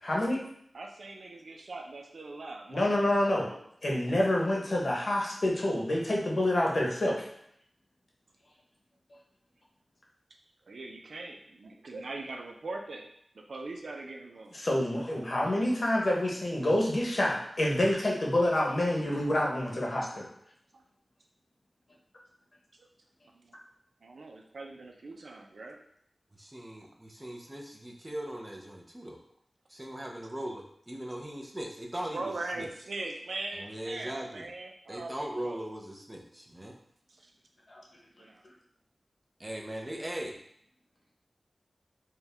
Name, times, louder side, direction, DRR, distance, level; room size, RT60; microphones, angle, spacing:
voice 1, 0.0-0.4 2.7-3.5 3.8-7.2 14.5-20.3 37.7-37.8, left 1 dB, 55° left, -3 dB, 1.0 m, -27 dB
voice 2, 0.7-3.6 10.7-13.1 13.3-14.6 20.7-20.8 22.8-22.9 23.3-23.6 24.0-25.8 32.1-35.6 37.1-37.3 38.2-38.4, right 2 dB, 85° right, 2 dB, 0.5 m, -41 dB
voice 3, 26.4-29.2 29.7-32.7 33.6-34.5 34.9-36.8 39.4-40.3, right 1 dB, 15° right, 0 dB, 0.6 m, -39 dB
4.5 x 2.3 x 3.4 m, 0.69 s
wide cardioid pair, 95°, 0 cm